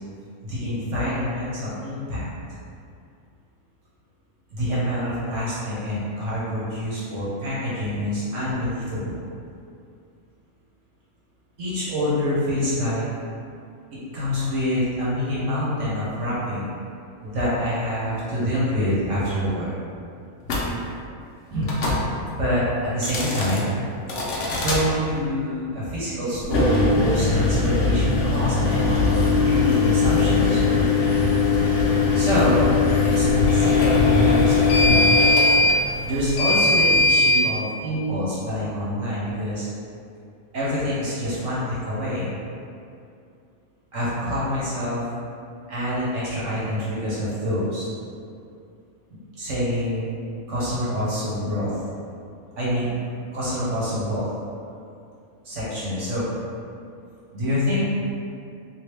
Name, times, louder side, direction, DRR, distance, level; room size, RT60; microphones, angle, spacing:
voice 1, 0.4-2.3 4.5-9.2 11.6-13.0 13.9-16.7 17.2-19.8 21.5-21.7 22.4-23.7 24.6-28.9 29.4-31.1 32.1-32.7 33.1-34.9 36.0-39.7 40.5-42.3 43.9-45.0 45.7-47.9 49.3-50.0 50.5-51.7 52.6-52.9 53.3-54.3 55.4-56.3 57.3-57.9, left 1 dB, 60° right, -9 dB, 1.2 m, -26 dB
sound 1, 20.4-20.7 21.6-22.0 22.9-23.6 24.1-24.8 26.4-37.4, left 3 dB, 65° left, 0.9 m, -19 dB
3.2 x 2.7 x 3.2 m, 2.5 s
omnidirectional pair, 1.5 m